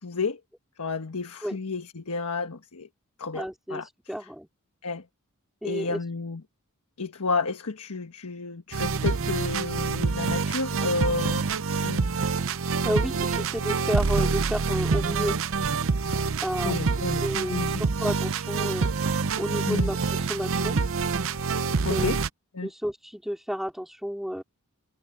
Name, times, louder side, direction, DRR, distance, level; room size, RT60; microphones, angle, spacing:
voice 1, 0.0-0.4 0.8-2.9 3.2-3.9 4.2-4.3 4.8-5.0 5.6-6.4 7.0-11.4 11.8-12.1 16.6-17.2 17.5-17.8 19.7-19.9 21.8-22.2 22.5-22.7, left 3 dB, 80° left, 1.4 m, -31 dB
voice 2, 3.3-3.8 4.1-4.5 5.6-6.0 12.8-15.4 16.4-16.8 17.2-18.9 19.4-20.8 21.9-22.2 22.6-24.4, equal, ahead, 3.7 m, -31 dB
sound 1, 8.7-22.3, right 4 dB, 65° right, 0.7 m, -26 dB
head